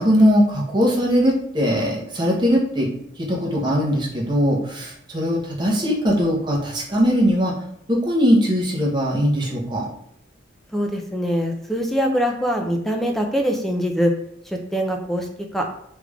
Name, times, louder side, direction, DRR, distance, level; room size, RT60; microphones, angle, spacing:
voice 1, 0.0-2.9 3.2-7.5 7.9-9.9, equal, 25° right, -2 dB, 0.8 m, -20 dB
voice 2, 10.7-14.1 14.5-15.3 15.5-15.7, equal, ahead, 2 dB, 0.4 m, -23 dB
3.2 x 2.5 x 3.3 m, 0.72 s
head